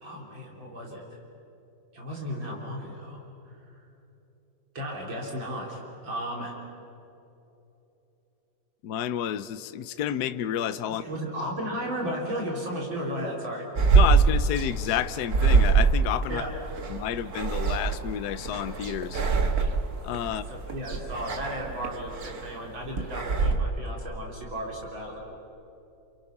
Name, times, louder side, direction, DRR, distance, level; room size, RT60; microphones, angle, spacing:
voice 1, 0.0-1.0 1.9-3.2 4.7-6.6 11.0-14.0 16.3-16.5 20.3-25.2, equal, 75° right, -2 dB, 4.3 m, -34 dB
voice 2, 8.8-11.0 13.9-16.5 16.9-19.2 20.0-20.4, left 10 dB, 65° left, 11 dB, 1.2 m, -30 dB
sound 1, 13.8-23.6, right 5 dB, 50° right, 2.0 m, -24 dB
30.0 x 28.5 x 5.9 m, 3.0 s
omnidirectional pair, 2.2 m